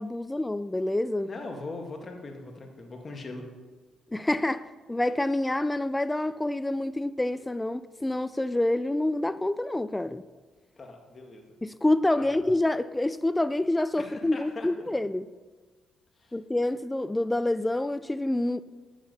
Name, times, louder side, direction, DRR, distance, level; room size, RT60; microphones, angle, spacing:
voice 1, 0.0-1.3 4.1-10.3 11.6-15.3 16.3-18.6, left 1 dB, 10° left, 0.3 m, -27 dB
voice 2, 1.3-3.4 10.8-11.4 12.2-12.3 14.0-14.7 16.2-16.3, left 3 dB, 35° left, 1.8 m, -40 dB
10.0 x 7.2 x 5.4 m
cardioid pair, 90°, 0 cm